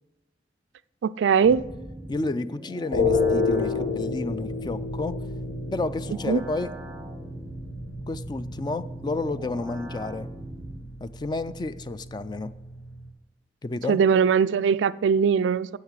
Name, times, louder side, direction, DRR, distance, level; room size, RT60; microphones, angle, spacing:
voice 1, 1.0-1.6 6.3-6.4 13.9-15.7, right 6 dB, 80° right, 0.3 m, -20 dB
sound 1, 1.4-10.8, right 1 dB, 10° right, 1.0 m, -41 dB
voice 2, 2.1-5.2 5.7-6.7 8.1-10.3 11.0-12.5 13.6-14.0, left 3 dB, 25° left, 0.3 m, -31 dB
sound 2, 2.9-13.1, left 3 dB, 85° left, 1.7 m, -31 dB
9.5 x 8.0 x 7.3 m
head